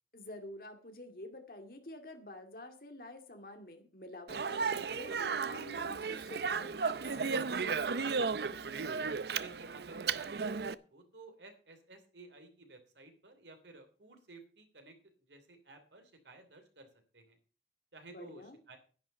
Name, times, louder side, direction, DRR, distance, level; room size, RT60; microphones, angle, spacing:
voice 1, 0.1-8.7 18.1-18.6, left 1 dB, 55° left, 5 dB, 2.3 m, -49 dB
Speech, 4.3-10.7, right 5 dB, 70° right, 0.6 m, -34 dB
voice 2, 9.3-16.9 17.1-17.4 17.9-18.8, right 3 dB, 85° right, 6 dB, 2.9 m, -55 dB
10.5 x 10.5 x 5.5 m, 0.40 s
head